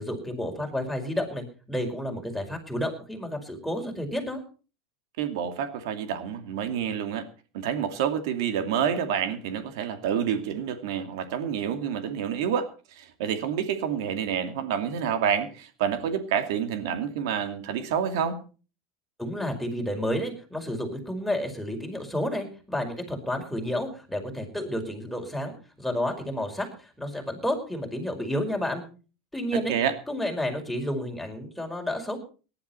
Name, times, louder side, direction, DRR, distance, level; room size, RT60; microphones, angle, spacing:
voice 1, 0.0-4.4 19.2-28.8 29.3-29.7 30.1-32.2, left 1 dB, ahead, 2 dB, 5.2 m, -31 dB
voice 2, 5.2-7.2 7.5-18.4 29.7-29.9, right 8 dB, 75° right, 8 dB, 2.5 m, -28 dB
18.0 x 11.5 x 4.4 m, 0.36 s
supercardioid pair, 110°, 2 cm